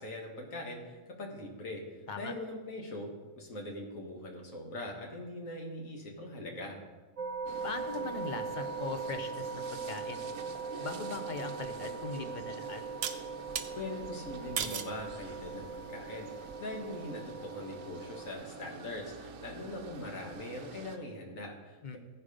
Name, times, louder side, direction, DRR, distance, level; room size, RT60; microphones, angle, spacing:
voice 1, 0.0-3.1 3.4-6.8 13.8-22.0, left 1 dB, 85° left, 0 dB, 2.1 m, -42 dB
sound 1, 7.2-18.3, right 5 dB, 45° right, 0.5 m, -41 dB
sound 2, 7.5-21.0, right 4 dB, 90° right, 1.3 m, -47 dB
voice 2, 7.6-10.3 10.8-12.8 21.8-22.0, left 4 dB, 45° left, 7 dB, 0.8 m, -40 dB
sound 3, 13.0-13.7 14.6-15.0 15.6-16.0, right 8 dB, 65° right, 0.9 m, -36 dB
15.0 x 5.1 x 5.0 m, 1.3 s
omnidirectional pair, 1.4 m